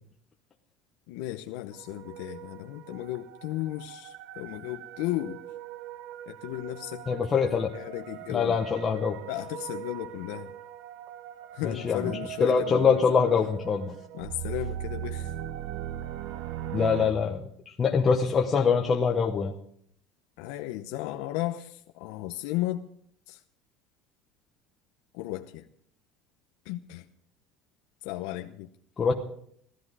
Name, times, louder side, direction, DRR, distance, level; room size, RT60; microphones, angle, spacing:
voice 1, 1.1-5.4 6.3-7.1 7.7-8.6 9.3-10.5 11.5-13.3 14.1-15.3 20.4-22.9 23.3-23.4 25.1-25.7 26.6-27.1 28.0-28.7, left 15 dB, 75° left, 6 dB, 0.8 m, -35 dB
sound 1, 1.7-17.1, right 11 dB, 60° right, 0.9 m, -40 dB
voice 2, 7.1-7.7 8.3-9.2 11.6-12.0 12.4-13.9 16.7-19.5 29.0-29.1, left 5 dB, 20° left, 0 dB, 0.9 m, -24 dB
16.0 x 13.5 x 4.9 m, 0.66 s
cardioid pair, 180°, 0 cm